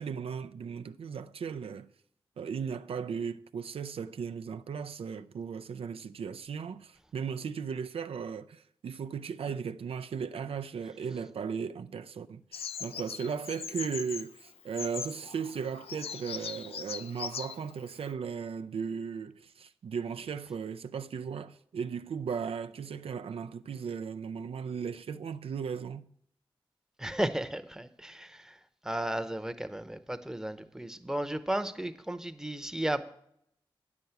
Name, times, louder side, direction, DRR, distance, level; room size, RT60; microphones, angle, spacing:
voice 1, 0.0-1.9 2.4-26.1, right 6 dB, 75° right, 0.4 m, -36 dB
Bird vocalization bird call bird song, 12.5-18.1, left 7 dB, 85° left, 0.4 m, -41 dB
voice 2, 27.0-33.1, right 1 dB, 5° right, 0.8 m, -34 dB
9.3 x 5.8 x 8.0 m
cardioid pair, 45°, 10 cm